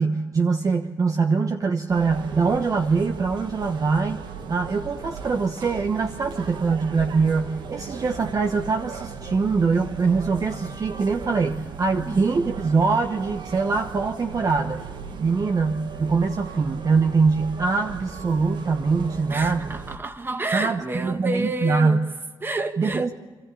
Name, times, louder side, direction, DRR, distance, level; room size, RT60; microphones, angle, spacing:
voice 1, 0.0-4.2 4.5-14.8 15.2-19.7 20.5-22.0 22.8-23.1, right 4 dB, 45° right, 1.1 m, -23 dB
sound 1, 1.9-20.0, right 6 dB, 70° right, 1.3 m, -37 dB
voice 2, 19.3-22.0 22.4-23.1, right 2 dB, 25° right, 1.7 m, -29 dB
28.0 x 13.5 x 8.6 m
cardioid pair, 70°, 8 cm